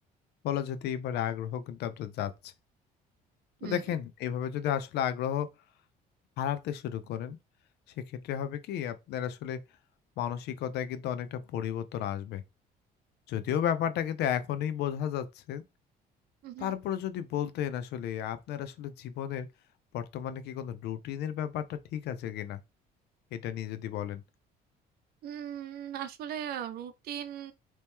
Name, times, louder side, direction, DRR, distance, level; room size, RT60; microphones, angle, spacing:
voice 1, 0.4-2.5 3.6-5.5 6.4-7.4 8.0-9.6 10.2-12.4 13.3-15.6 16.6-19.5 19.9-22.6 23.3-24.2, left 10 dB, 80° left, 0.6 m, -33 dB
voice 2, 16.4-16.7 25.2-27.5, right 10 dB, 65° right, 0.6 m, -38 dB
4.2 x 3.0 x 3.5 m
cardioid pair, 110°, 17 cm